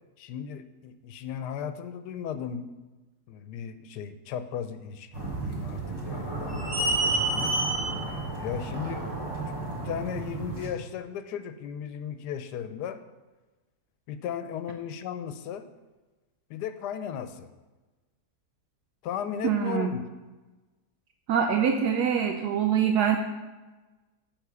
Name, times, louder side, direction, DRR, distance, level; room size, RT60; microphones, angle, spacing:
voice 1, 0.2-2.7 3.3-7.5 8.4-9.1 9.7-13.0 14.1-15.7 16.5-17.5 19.0-20.0, left 8 dB, 85° left, 11 dB, 1.2 m, -36 dB
sound 1, 5.1-10.7, right 2 dB, 15° right, 1.3 m, -30 dB
voice 2, 19.4-19.9 21.3-23.2, right 8 dB, 80° right, 3 dB, 1.2 m, -24 dB
9.5 x 3.7 x 6.8 m, 1.2 s
omnidirectional pair, 1.7 m